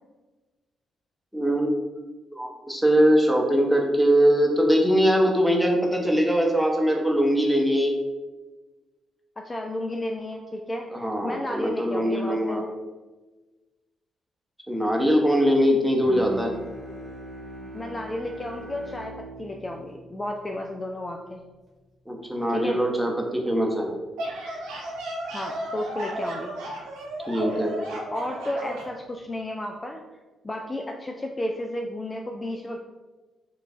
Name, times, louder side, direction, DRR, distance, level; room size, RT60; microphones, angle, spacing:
voice 1, 1.3-1.7 2.4-7.9 10.9-12.6 14.7-16.5 22.1-23.9 27.3-27.7, equal, ahead, 0 dB, 0.8 m, -22 dB
voice 2, 9.4-12.6 17.7-21.4 22.5-22.8 25.3-26.5 28.1-30.0 30.4-32.8, left 1 dB, 30° left, 2 dB, 0.3 m, -32 dB
Bowed string instrument, 16.0-21.5, right 1 dB, 55° right, 1.1 m, -41 dB
sound 1, 23.9-28.9, right 1 dB, 75° right, 0.5 m, -34 dB
4.5 x 2.4 x 2.5 m, 1.2 s
hypercardioid pair, 40°, 0 cm